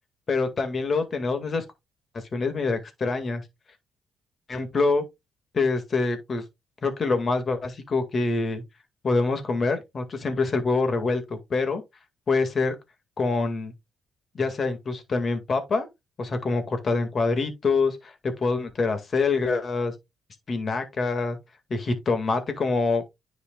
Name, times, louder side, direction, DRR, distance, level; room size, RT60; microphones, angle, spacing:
voice 1, 0.3-1.6 2.3-3.4 4.5-5.0 5.5-6.4 6.8-8.6 9.0-11.8 12.3-12.8 13.2-13.7 14.3-15.9 16.2-19.9 20.5-21.4 21.7-23.0, left 3 dB, 40° left, 2.1 m, -25 dB
9.9 x 5.0 x 2.4 m
cardioid pair, 90°, 0 cm